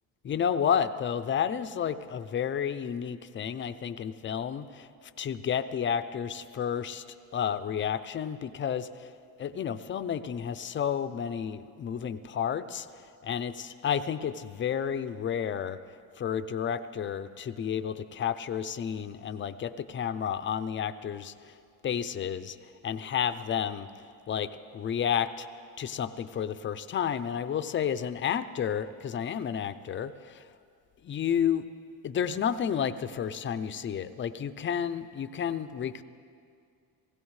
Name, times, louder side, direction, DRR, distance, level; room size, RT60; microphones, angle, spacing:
voice 1, 0.2-4.9 5.2-7.0 7.3-9.1 9.4-15.8 16.2-21.5 21.8-22.6 22.8-23.9 24.3-25.5 25.8-30.5 31.0-31.6 32.0-36.0, left 8 dB, 30° left, 12 dB, 0.4 m, -31 dB
19.5 x 16.0 x 3.2 m, 2.3 s
cardioid pair, 125°, 43 cm